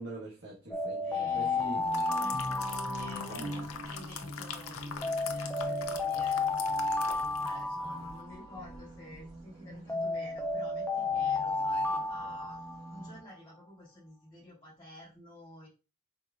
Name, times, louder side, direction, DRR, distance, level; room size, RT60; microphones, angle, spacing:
voice 1, 0.0-1.8 3.3-3.7, right 1 dB, 60° right, 1.2 m, -44 dB
sound 1, 0.7-3.9 5.0-8.8 9.9-13.1, left 3 dB, 10° left, 0.5 m, -32 dB
voice 2, 1.0-1.8 2.2-12.6 12.9-15.7, equal, 25° left, 2.3 m, -51 dB
sound 2, 1.2-13.2, equal, 80° right, 1.7 m, -45 dB
sound 3, 1.6-7.6 8.0-8.1, left 7 dB, 85° left, 0.6 m, -43 dB
4.7 x 3.7 x 2.4 m
head